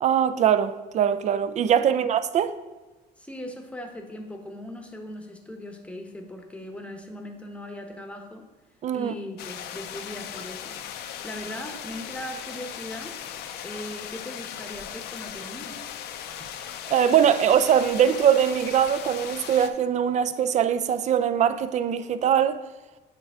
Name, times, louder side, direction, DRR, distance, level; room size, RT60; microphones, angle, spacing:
voice 1, 0.0-2.6 8.8-9.1 16.9-22.6, right 9 dB, 45° right, 0.4 m, -22 dB
voice 2, 3.2-8.4 8.9-10.8 11.2-13.1 13.6-15.7, left 1 dB, 5° left, 0.9 m, -39 dB
sound 1, 9.4-19.7, left 9 dB, 75° left, 0.5 m, -38 dB
8.9 x 3.4 x 3.5 m
cardioid pair, 110°, 17 cm